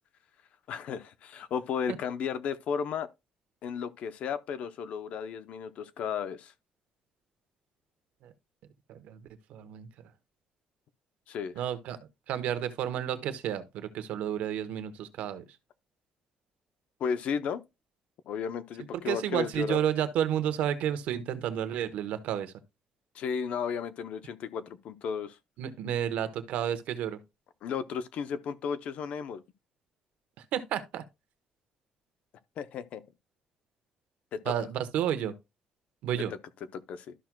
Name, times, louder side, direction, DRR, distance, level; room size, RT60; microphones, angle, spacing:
voice 1, 0.7-3.1 3.6-6.5 11.3-11.5 17.0-17.6 18.3-19.8 23.1-25.4 27.6-29.4 32.6-33.0 34.3-34.4 36.7-37.1, left 7 dB, 65° left, 0.6 m, -34 dB
voice 2, 8.9-9.2 9.5-9.9 11.6-12.0 12.3-15.4 19.0-22.5 25.6-27.2 30.5-31.0 34.4-35.3 36.0-36.3, right 10 dB, 80° right, 1.0 m, -31 dB
12.5 x 5.9 x 2.2 m
cardioid pair, 145°, 2 cm